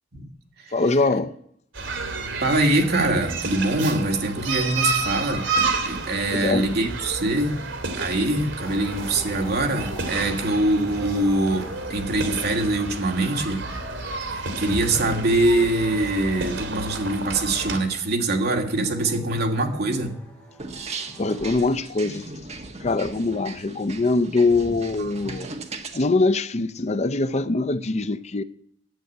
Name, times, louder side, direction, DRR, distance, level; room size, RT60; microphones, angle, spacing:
voice 1, 0.7-1.3 6.3-6.7 21.2-22.3 22.8-25.5 25.9-28.4, left 3 dB, 35° left, 0.6 m, -23 dB
sound 1, 1.7-17.8, right 3 dB, 80° right, 2.7 m, -30 dB
voice 2, 2.4-5.4 5.8-7.6 8.0-13.6 14.3-20.1 25.0-25.1, right 2 dB, 60° right, 2.5 m, -23 dB
sound 2, 8.6-21.9, equal, 10° left, 6.6 m, -49 dB
sound 3, 20.6-26.0, right 3 dB, 35° right, 1.5 m, -37 dB
11.0 x 8.9 x 9.2 m
head